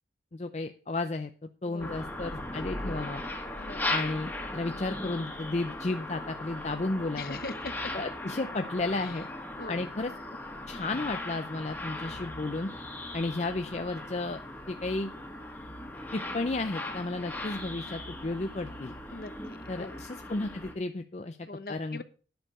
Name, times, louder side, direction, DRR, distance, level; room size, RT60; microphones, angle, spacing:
voice 1, 0.3-1.3 1.6-3.2 3.9-7.4 7.9-9.3 9.7-10.1 10.7-12.7 13.1-14.4 14.7-15.1 16.1-18.9 19.7-22.0, left 2 dB, 40° left, 7 dB, 0.6 m, -33 dB
voice 2, 1.7-2.0 3.6-3.9 7.1-7.8 8.9-9.1 9.6-9.8 19.1-20.0 21.5-22.0, left 3 dB, 55° left, 12 dB, 0.9 m, -41 dB
sound 1, 1.8-20.7, left 1 dB, 10° left, 1.6 m, -38 dB
10.5 x 6.7 x 6.5 m, 0.39 s
head